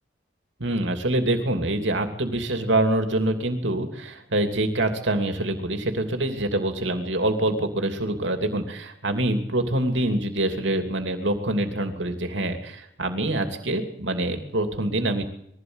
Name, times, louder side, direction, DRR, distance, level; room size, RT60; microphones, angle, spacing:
voice 1, 0.6-15.2, right 1 dB, 80° right, 5 dB, 2.8 m, -25 dB
22.0 x 16.0 x 8.0 m, 0.73 s
head